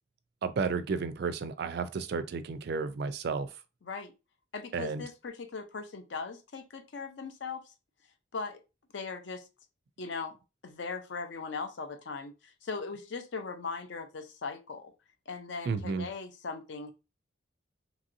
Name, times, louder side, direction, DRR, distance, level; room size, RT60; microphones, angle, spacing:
voice 1, 0.4-3.5 4.7-5.0 15.7-16.1, right 5 dB, 55° right, 0.3 m, -32 dB
voice 2, 3.8-4.1 4.5-7.7 8.3-8.6 8.9-9.4 10.0-10.3 10.6-14.9 15.3-16.9, left 4 dB, 60° left, 0.5 m, -39 dB
2.9 x 2.7 x 2.5 m
head